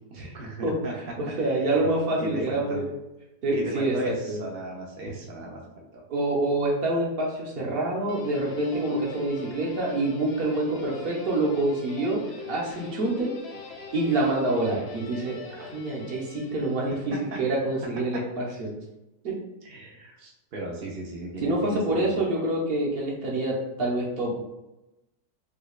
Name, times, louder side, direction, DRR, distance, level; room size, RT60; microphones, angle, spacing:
voice 1, 0.1-0.9 1.4-1.7 2.2-2.8 3.5-6.0 15.6-15.7 19.6-22.2, right 1 dB, 75° right, -2 dB, 0.5 m, -37 dB
voice 2, 1.2-3.0 3.4-4.4 6.1-12.2 12.5-13.3 13.9-18.7 19.2-19.3 21.4-24.4, right 2 dB, 45° right, -3 dB, 0.8 m, -27 dB
Guitar, 8.1-17.4, left 3 dB, 85° left, 0.5 m, -42 dB
5.0 x 2.2 x 2.4 m, 0.96 s
omnidirectional pair, 1.7 m